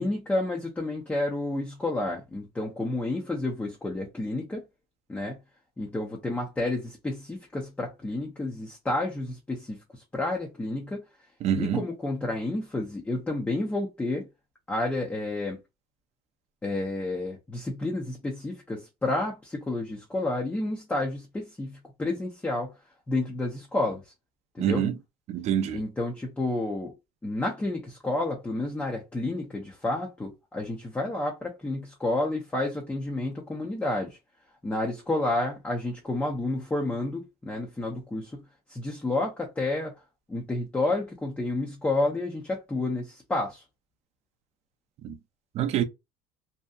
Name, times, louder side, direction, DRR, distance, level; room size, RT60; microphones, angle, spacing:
voice 1, 0.0-4.7 5.1-5.4 5.8-11.0 11.6-14.3 14.7-15.6 16.6-22.7 23.1-24.0 24.5-24.9 25.7-26.9 27.2-34.2 34.6-38.4 38.7-39.9 40.3-43.6, left 2 dB, 10° left, 0.6 m, -30 dB
voice 2, 11.4-11.8 24.6-25.0 25.3-25.8 45.0-45.2 45.5-45.8, right 9 dB, 45° right, 0.5 m, -26 dB
2.7 x 2.2 x 2.3 m
supercardioid pair, 120°, 15 cm